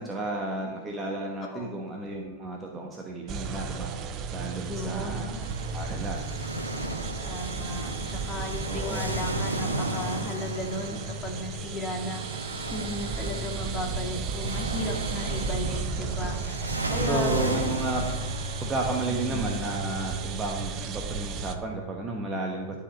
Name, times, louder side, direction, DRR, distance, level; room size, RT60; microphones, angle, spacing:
voice 1, 0.0-3.9 4.3-6.5 8.7-9.1 17.0-18.0 18.6-22.8, right 2 dB, 20° right, 0 dB, 1.2 m, -33 dB
sound 1, 3.3-21.5, right 4 dB, 35° right, 0.8 m, -34 dB
voice 2, 4.5-5.4 7.2-17.5 19.3-19.5, left 1 dB, 20° left, 1 dB, 2.1 m, -35 dB
sound 2, 5.4-19.7, right 1 dB, 80° right, 0.9 m, -35 dB
11.5 x 5.3 x 5.3 m, 1.3 s
figure-of-eight pair, 90°, 0 cm